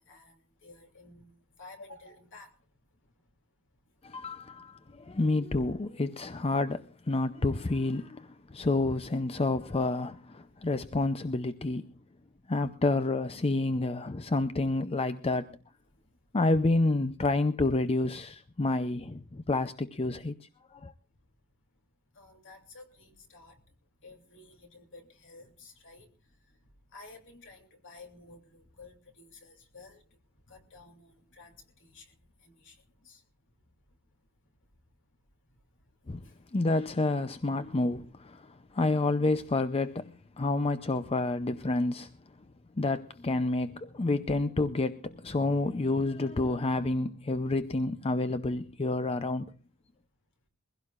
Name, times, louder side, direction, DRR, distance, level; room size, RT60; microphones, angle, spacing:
voice 1, 0.0-2.5 4.8-4.9 22.1-23.6 24.0-26.1 26.5-26.6 26.9-30.0 30.5-32.2 32.4-33.2 36.2-36.4, left 3 dB, 60° left, 3.0 m, -53 dB
voice 2, 4.0-11.9 12.5-15.5 16.3-20.3 20.7-20.9 36.1-36.2 36.5-42.1 42.8-49.5, left 2 dB, 25° left, 0.6 m, -29 dB
22.5 x 16.5 x 2.5 m
head